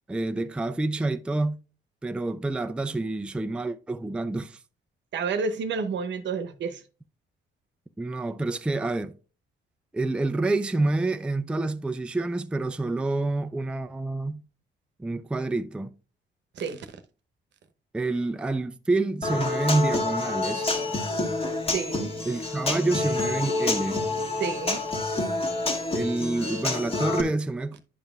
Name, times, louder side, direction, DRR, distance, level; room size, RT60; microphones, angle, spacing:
voice 1, 0.1-1.6 2.0-4.6 8.0-9.1 9.9-14.4 15.0-15.9 17.9-20.7 22.3-24.0 25.9-27.8, right 2 dB, 5° right, 0.4 m, -28 dB
voice 2, 5.1-6.8 16.5-16.9 21.7-22.1 24.4-24.8, right 5 dB, 65° right, 0.9 m, -30 dB
Human voice / Acoustic guitar, 19.2-27.2, left 2 dB, 30° left, 1.6 m, -28 dB
10.5 x 5.3 x 2.4 m
cardioid pair, 90°, 20 cm